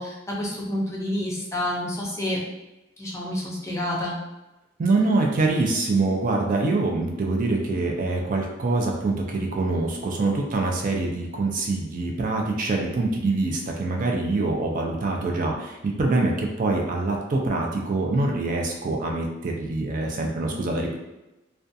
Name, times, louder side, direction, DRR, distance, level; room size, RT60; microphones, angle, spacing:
voice 1, 0.0-2.4 3.0-4.2, left 1 dB, 15° left, -4 dB, 0.5 m, -29 dB
voice 2, 4.8-21.0, right 2 dB, 45° right, 1 dB, 0.4 m, -25 dB
2.4 x 2.2 x 2.6 m, 0.97 s
head